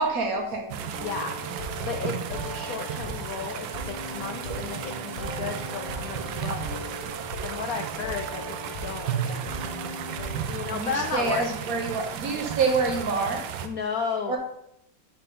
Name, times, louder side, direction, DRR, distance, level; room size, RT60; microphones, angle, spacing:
voice 1, 0.0-0.8 10.7-13.4 14.3-14.4, right 4 dB, 60° right, 3 dB, 1.1 m, -27 dB
sound 1, 0.7-13.7, right 8 dB, 80° right, 1.3 m, -34 dB
voice 2, 0.8-7.0 7.4-9.6 10.4-11.5 12.3-12.4 13.6-14.4, left 6 dB, 75° left, 5 dB, 0.8 m, -34 dB
sound 2, 0.9-10.4, left 1 dB, 40° left, 1.5 m, -39 dB
8.2 x 4.0 x 3.8 m, 0.75 s
omnidirectional pair, 2.1 m